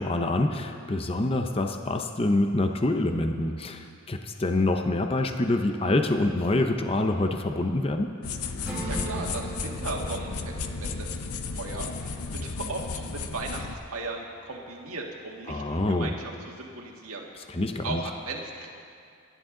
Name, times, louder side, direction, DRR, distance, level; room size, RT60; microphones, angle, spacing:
voice 1, 0.0-8.1 15.5-16.1 17.5-18.0, left 2 dB, 25° left, 5 dB, 0.7 m, -26 dB
sound 1, 8.2-13.7, left 4 dB, 85° left, 0.8 m, -34 dB
Acoustic guitar / Strum, 8.6-13.9, right 1 dB, 5° right, 3.8 m, -40 dB
voice 2, 8.8-11.1 11.5-17.5 17.8-18.7, right 2 dB, 80° right, -1 dB, 1.7 m, -37 dB
28.0 x 11.0 x 3.8 m, 2.4 s
head